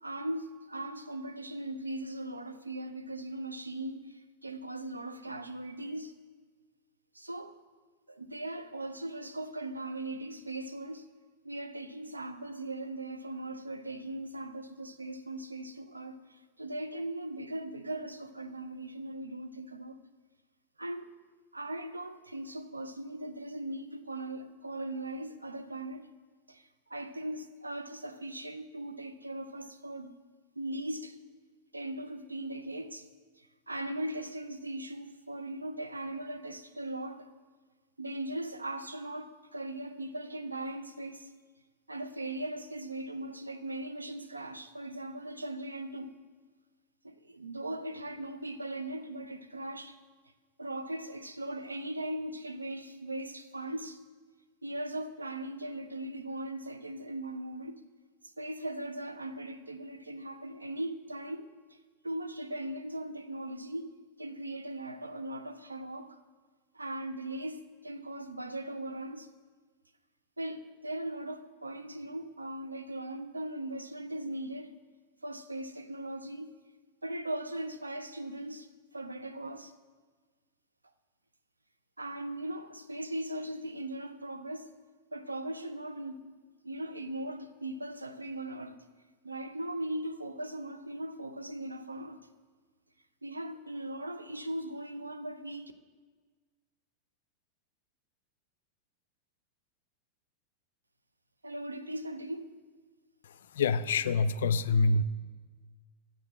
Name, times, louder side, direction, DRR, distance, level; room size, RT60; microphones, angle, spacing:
voice 1, 0.0-6.1 7.1-7.6 8.1-11.1 11.4-20.0 20.8-21.1 21.5-26.1 26.5-30.1 30.6-31.2 31.7-33.1 33.4-37.3 38.0-41.3 41.9-46.1 47.0-50.0 50.6-54.0 54.6-57.8 58.4-61.8 62.0-66.2 66.7-69.3 70.4-74.7 75.2-76.5 77.0-78.7 78.9-79.7 82.0-84.7 85.1-86.3 86.6-88.8 89.2-92.2 93.2-95.7 101.4-102.6 104.4-104.5, right 1 dB, 90° right, 0.5 m, -39 dB
voice 2, 103.5-105.0, left 4 dB, 70° left, 0.4 m, -26 dB
7.4 x 7.3 x 7.4 m
figure-of-eight pair, 95°, 0 cm